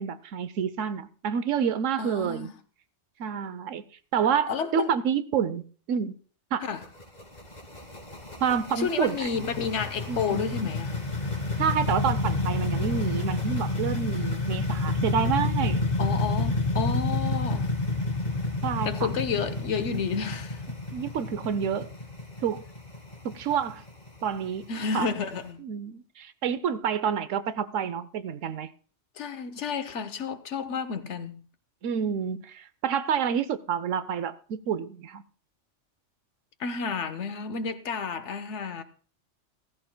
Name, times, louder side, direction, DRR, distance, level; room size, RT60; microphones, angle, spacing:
voice 1, 0.0-2.5 3.2-3.8 4.1-6.1 6.5-6.7 8.4-9.3 10.1-10.4 11.6-15.8 18.6-18.9 20.9-21.9 22.4-22.6 23.3-23.8 24.2-24.6 24.9-25.1 25.6-28.7 31.8-35.2, right 7 dB, 90° right, 1.1 m, -28 dB
voice 2, 2.0-2.5 4.5-4.9 6.6-6.8 8.8-10.9 16.0-17.8 18.8-20.6 24.7-25.6 29.2-31.5 36.6-38.8, left 5 dB, 70° left, 1.2 m, -31 dB
sound 1, 6.6-25.4, left 2 dB, 35° left, 2.3 m, -30 dB
16.5 x 15.0 x 2.2 m
omnidirectional pair, 1.3 m